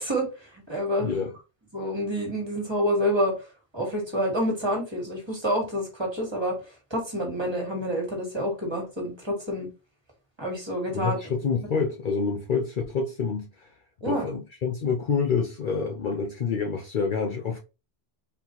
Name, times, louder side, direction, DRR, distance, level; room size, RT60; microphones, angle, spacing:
voice 1, 0.0-1.1 1.7-3.4 3.7-6.6 6.9-9.7 10.4-11.2 14.0-14.3, equal, 25° right, 1.4 m, -28 dB
voice 2, 1.0-1.3 10.9-13.5 14.1-17.6, left 5 dB, 50° left, 0.7 m, -27 dB
4.1 x 3.6 x 2.9 m
omnidirectional pair, 1.2 m